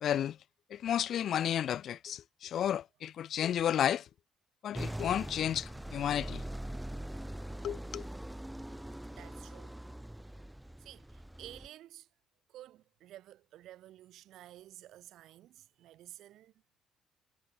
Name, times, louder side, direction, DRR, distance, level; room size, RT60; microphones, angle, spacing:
voice 1, 0.0-0.4 0.7-4.0 4.6-6.4 7.6-8.0, left 10 dB, 50° left, 0.6 m, -32 dB
sound 1, 4.8-11.7, right 1 dB, 5° right, 0.8 m, -42 dB
voice 2, 9.1-9.8 10.8-12.1 12.5-16.5, right 13 dB, 70° right, 1.7 m, -52 dB
cardioid pair, 145°, 0 cm